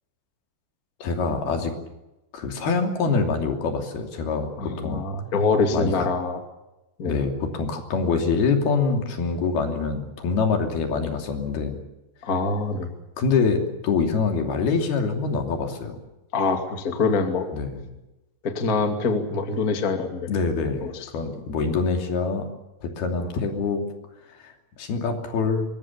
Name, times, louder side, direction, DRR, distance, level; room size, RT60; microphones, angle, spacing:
voice 1, 1.0-1.7 2.3-4.5 4.8-5.0 5.7-6.1 7.1-11.8 13.2-16.0 17.5-17.8 20.3-22.5 23.0-23.8 24.4-24.5 24.8-25.7, left 4 dB, 75° left, 4 dB, 4.8 m, -25 dB
voice 2, 4.6-6.4 7.0-7.2 12.2-12.9 16.3-17.5 18.4-20.3 20.8-21.1 23.2-23.3, left 4 dB, 25° left, 5 dB, 2.3 m, -24 dB
25.0 x 21.5 x 7.2 m, 0.99 s
omnidirectional pair, 4.5 m